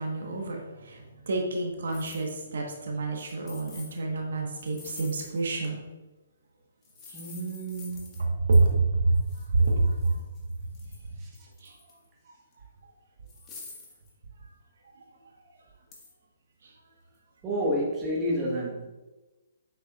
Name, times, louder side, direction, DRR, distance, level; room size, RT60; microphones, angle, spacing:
voice 1, 0.0-5.8 8.2-10.2 10.8-11.2 11.6-11.7, right 3 dB, 65° right, 1 dB, 1.3 m, -27 dB
sound 1, 1.9-2.4 3.2-4.0 4.5-5.5 6.8-8.3 8.5-8.7 9.1-11.1 11.3-12.1 12.5-12.6 13.3-14.1 15.9-16.1, left 4 dB, 25° left, 1.7 m, -48 dB
voice 2, 7.1-8.3 11.2-11.3 17.4-18.9, equal, 20° right, -3 dB, 1.4 m, -30 dB
8.0 x 6.3 x 2.5 m, 1.1 s
figure-of-eight pair, 130°, 0 cm